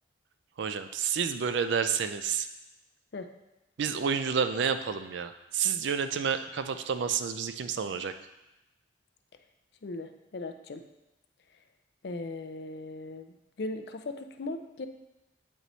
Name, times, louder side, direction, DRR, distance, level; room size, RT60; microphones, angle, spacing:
voice 1, 0.6-2.5 3.8-8.1, right 6 dB, 65° right, 9 dB, 0.4 m, -29 dB
voice 2, 9.8-10.8 12.0-14.9, left 2 dB, 55° left, 7 dB, 0.4 m, -38 dB
8.2 x 3.0 x 4.0 m, 0.95 s
head